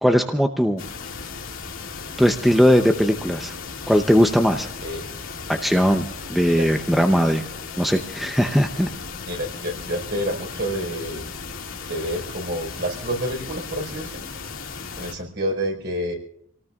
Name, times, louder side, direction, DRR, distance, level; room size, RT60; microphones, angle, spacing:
voice 1, 0.0-0.8 2.2-3.5 3.9-4.7 5.5-7.4 7.8-8.9, equal, ahead, 5 dB, 0.7 m, -19 dB
sound 1, 0.8-15.1, left 5 dB, 90° left, 2.3 m, -36 dB
voice 2, 9.3-11.2 11.8-14.3 15.0-16.2, equal, 55° right, 1 dB, 4.7 m, -28 dB
27.0 x 18.5 x 2.4 m, 0.66 s
head